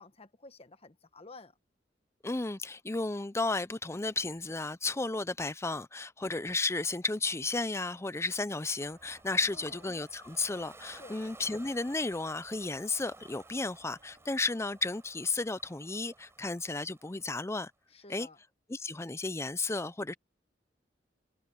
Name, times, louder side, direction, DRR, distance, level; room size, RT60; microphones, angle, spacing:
voice 1, 0.0-1.6 9.4-9.8 10.9-11.2 17.9-18.4, left 3 dB, 35° left, 1.4 m, -52 dB
voice 2, 2.2-17.7 18.1-18.3 18.7-20.1, left 3 dB, 15° left, 0.6 m, -33 dB
Trumpet, 7.6-15.8, right 5 dB, 80° right, 5.0 m, -69 dB
Ocean, 8.8-17.6, right 2 dB, 15° right, 6.6 m, -56 dB
head